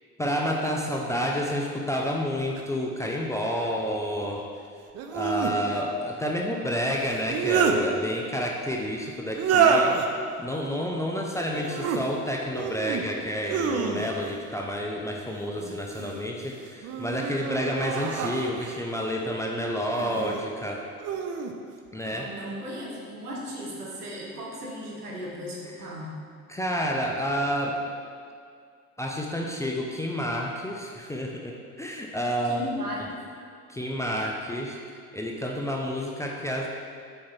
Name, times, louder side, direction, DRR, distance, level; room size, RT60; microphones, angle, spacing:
voice 1, 0.2-4.4 5.1-10.0 10.4-20.8 21.9-22.3 26.5-27.8 29.0-32.7 33.7-34.8 35.1-36.7, equal, 5° left, -1 dB, 0.5 m, -29 dB
sound 1, 2.6-2.7 4.9-5.6 7.1-7.8 9.3-10.1 11.5-12.0 12.5-13.0 13.4-14.3 15.6-16.2 16.8-18.8 19.9-20.4 21.0-21.5, right 6 dB, 35° right, 0.6 m, -27 dB
voice 2, 11.5-12.0 22.0-26.1 32.4-33.1, equal, 80° right, -4 dB, 1.5 m, -37 dB
7.4 x 4.5 x 4.5 m, 2.2 s
figure-of-eight pair, 65°, 45 cm